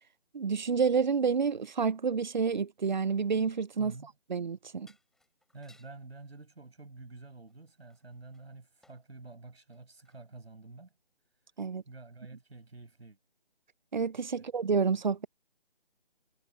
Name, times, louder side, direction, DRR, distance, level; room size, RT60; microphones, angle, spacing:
voice 1, 0.3-3.9 4.3-4.9 11.6-11.8 13.9-15.3, right 5 dB, 50° right, 0.8 m, -29 dB
sound 1, 2.5-3.2 4.4-4.5 4.8-6.0 7.5-9.1 9.5-10.3 10.9-11.0, left 2 dB, ahead, 5.6 m, -67 dB
voice 2, 3.8-4.1 5.5-10.9 11.8-13.2 14.3-14.4, right 3 dB, 80° right, 6.6 m, -49 dB
figure-of-eight pair, 160°, 31 cm